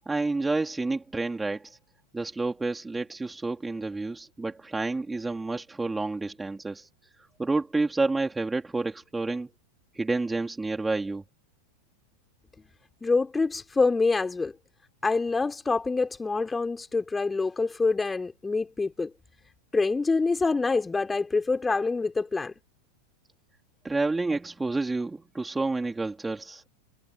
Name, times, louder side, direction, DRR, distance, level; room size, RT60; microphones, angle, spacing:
voice 1, 0.1-1.8 2.1-6.9 7.4-9.5 10.0-11.2 23.8-26.7, right 3 dB, 10° right, 3.9 m, -29 dB
voice 2, 13.0-14.5 15.0-19.1 19.7-22.5, left 3 dB, 10° left, 6.0 m, -26 dB
figure-of-eight pair, 90°, 0 cm